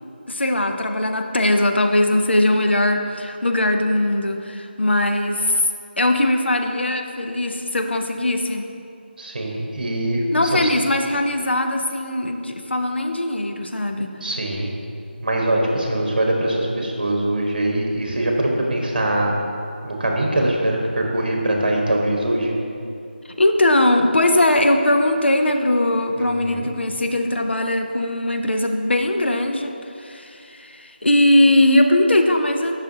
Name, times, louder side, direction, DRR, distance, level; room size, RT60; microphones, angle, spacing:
voice 1, 0.3-5.7 6.0-8.7 10.3-14.1 23.2-32.7, left 1 dB, 80° left, 5 dB, 0.7 m, -20 dB
voice 2, 9.2-10.2 10.6-10.7 14.2-14.7 15.2-19.3 19.8-22.5 26.2-26.7, right 1 dB, 55° right, 0 dB, 1.4 m, -22 dB
10.5 x 5.9 x 2.8 m, 2.6 s
figure-of-eight pair, 160°, 6 cm